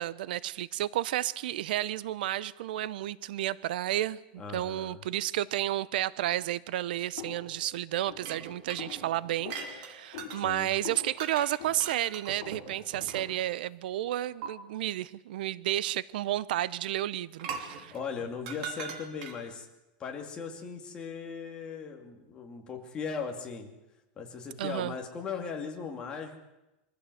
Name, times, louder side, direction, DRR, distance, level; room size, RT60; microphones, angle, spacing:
voice 1, 0.0-4.2 4.5-17.9 24.6-24.9, right 13 dB, 70° right, 0.7 m, -32 dB
voice 2, 4.4-5.0 10.4-10.8 17.9-19.7 20.0-23.7 24.2-26.4, left 6 dB, 15° left, 2.5 m, -38 dB
sound 1, 7.2-12.9, left 9 dB, 55° left, 5.3 m, -46 dB
sound 2, 8.2-10.4 11.2-11.5 11.8-13.5 14.4-14.5 17.4-19.5, right 6 dB, 50° right, 3.0 m, -41 dB
24.0 x 15.5 x 7.9 m
supercardioid pair, 175°, 5 cm